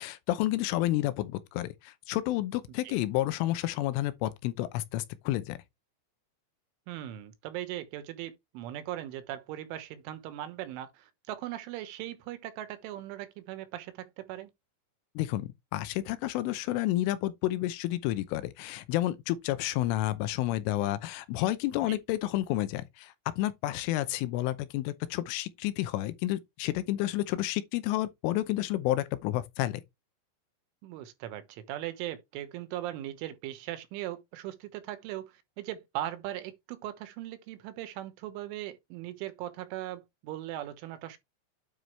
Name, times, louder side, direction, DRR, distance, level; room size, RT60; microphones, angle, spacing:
voice 1, 0.0-5.6 15.2-29.8, left 15 dB, 85° left, 3.3 m, -30 dB
voice 2, 6.9-14.5 21.9-22.0 30.8-41.2, right 13 dB, 80° right, 3.6 m, -39 dB
9.3 x 5.0 x 3.2 m
omnidirectional pair, 5.6 m